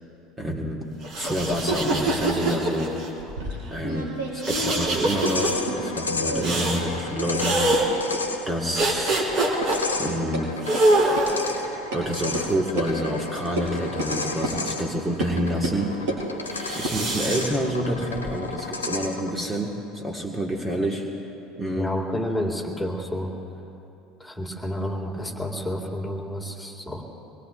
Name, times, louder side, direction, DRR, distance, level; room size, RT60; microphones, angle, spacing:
voice 1, 0.4-3.2 3.7-9.3 10.0-10.5 11.9-16.1 16.6-21.1 21.5-21.9, equal, 20° right, 0 dB, 1.8 m, -28 dB
sound 1, 1.0-3.1 4.4-5.5 6.4-6.8 7.4-7.8 8.7-9.8 10.6-11.5 12.3-13.4 16.5-17.4, right 2 dB, 55° right, 3.0 m, -24 dB
sound 2, 3.2-6.0 6.2-7.0 7.3-7.4 7.7-7.8 8.1-8.2 8.8-8.9 9.2-9.3 9.6-9.7 10.0-10.4 10.7-10.8 11.2-11.3 11.9-12.0 12.3-12.4 12.8-12.9 13.6-13.7 14.0-14.1 14.4-14.6 15.2-15.3 15.6-16.2 16.7-18.3, right 1 dB, 70° right, 4.8 m, -31 dB
sound 3, 4.9-19.4, left 3 dB, 90° left, 1.2 m, -33 dB
voice 2, 21.8-23.3 24.2-27.0, equal, 5° left, 1 dB, 2.2 m, -30 dB
24.5 x 21.5 x 2.6 m, 3.0 s
hypercardioid pair, 70°, 0 cm